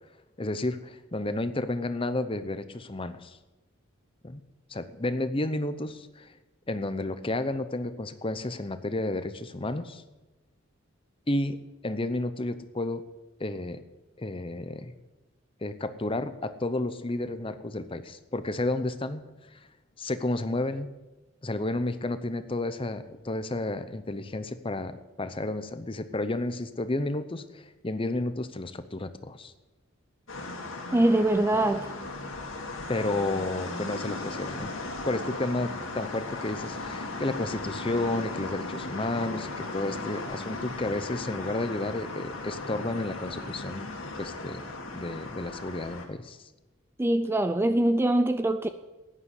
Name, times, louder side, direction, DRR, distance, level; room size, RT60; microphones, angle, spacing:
voice 1, 0.4-3.4 4.2-4.4 4.7-6.3 6.7-10.0 11.3-11.6 11.8-13.0 13.4-13.8 14.2-14.9 15.6-19.2 19.5-19.6 20.0-20.9 21.4-29.5 32.9-34.7 35.1-43.9 44.2-44.6 44.9-46.5, left 2 dB, 25° left, 11 dB, 0.7 m, -31 dB
sound 1, 30.3-46.1, left 2 dB, 65° left, 2.2 m, -37 dB
voice 2, 30.9-31.9 47.0-48.7, right 1 dB, 10° right, 10 dB, 0.4 m, -23 dB
11.5 x 9.9 x 8.2 m, 1.1 s
head